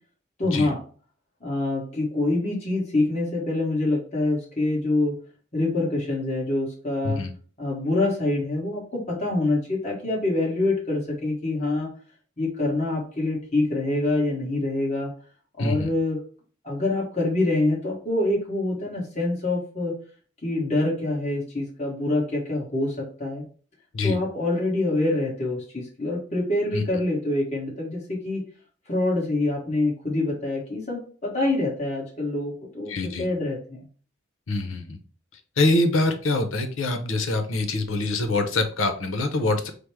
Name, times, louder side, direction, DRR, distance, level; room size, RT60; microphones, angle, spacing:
voice 1, 0.4-0.8 1.4-5.2 5.5-7.2 7.6-11.9 12.4-15.1 15.6-16.2 16.6-20.0 20.4-23.4 24.0-28.4 28.9-33.9, left 2 dB, 35° left, -4 dB, 1.3 m, -25 dB
voice 2, 15.6-15.9 23.9-24.2 26.7-26.8 32.9-33.2 34.5-35.0 35.3-39.7, left 2 dB, 85° left, 7 dB, 0.8 m, -24 dB
5.0 x 2.1 x 4.6 m, 0.41 s
head